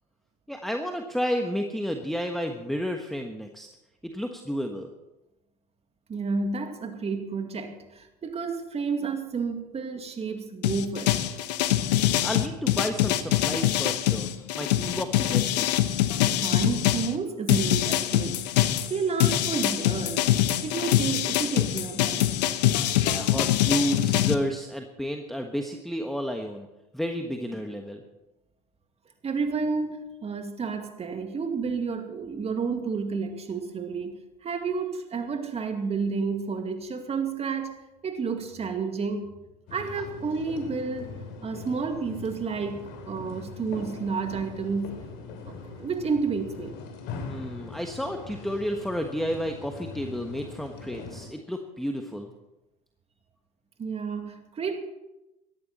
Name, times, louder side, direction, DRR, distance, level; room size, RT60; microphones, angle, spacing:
voice 1, 0.5-3.7 4.1-4.9 12.2-14.3 14.5-15.7 23.0-26.7 26.9-28.0 47.3-52.3, equal, ahead, 1.3 m, -31 dB
voice 2, 6.1-11.1 16.3-20.3 20.6-22.3 29.2-39.3 39.7-44.9 45.5-46.7 53.8-54.8, right 5 dB, 30° right, 2.3 m, -31 dB
sound 1, 10.6-17.1 17.5-24.4, left 13 dB, 75° left, 1.1 m, -24 dB
sound 2, 39.7-51.3, left 4 dB, 60° left, 3.3 m, -41 dB
18.0 x 13.5 x 4.3 m
hypercardioid pair, 80°, 21 cm